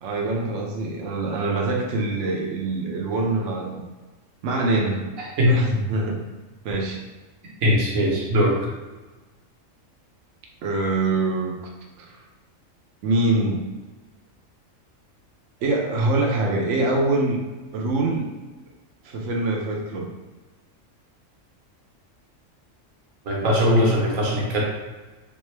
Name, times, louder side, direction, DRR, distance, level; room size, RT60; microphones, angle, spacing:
voice 1, 0.0-3.8 4.4-5.1 5.5-6.2 6.6-7.0 10.6-11.6 12.0-12.2 13.0-13.6 15.6-17.4 17.7-18.3 19.0-20.1, right 2 dB, 70° right, 0 dB, 0.9 m, -24 dB
voice 2, 7.6-8.6 23.2-24.6, equal, 90° right, -3 dB, 1.4 m, -20 dB
3.6 x 3.3 x 3.2 m, 1.2 s
omnidirectional pair, 1.4 m